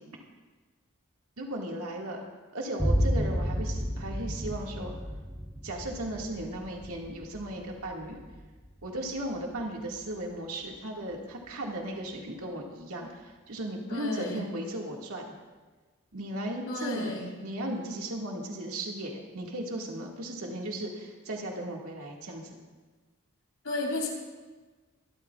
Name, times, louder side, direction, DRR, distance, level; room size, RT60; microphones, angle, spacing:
voice 1, 1.4-2.2 2.5-4.9 5.6-8.2 8.8-15.2 16.1-22.6, right 1 dB, 80° right, -1 dB, 2.0 m, -36 dB
Large Low Boom, 2.8-10.2, equal, 5° right, 1.1 m, -32 dB
voice 2, 13.9-14.5 16.7-17.3 23.6-24.1, left 2 dB, 85° left, -2 dB, 4.0 m, -33 dB
24.5 x 13.0 x 2.4 m, 1.3 s
head